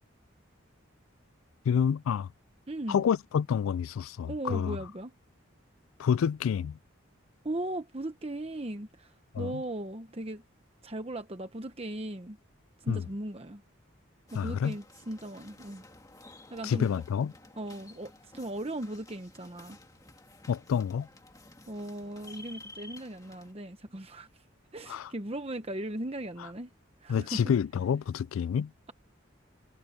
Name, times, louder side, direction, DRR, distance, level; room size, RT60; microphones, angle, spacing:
voice 1, 1.7-2.3 2.9-4.8 6.0-6.8 9.3-9.6 12.9-13.1 14.3-14.8 16.6-17.3 20.5-21.1 24.9-25.1 27.1-28.7, left 7 dB, 85° left, 0.3 m, -28 dB
voice 2, 2.7-3.0 4.3-5.1 7.4-10.4 10.8-12.4 12.8-13.6 14.3-15.8 16.5-16.9 17.6-19.8 21.7-24.3 24.7-26.7 27.0-27.4, right 1 dB, 30° right, 1.0 m, -38 dB
sound 1, 14.3-23.5, left 2 dB, 15° left, 2.0 m, -53 dB
head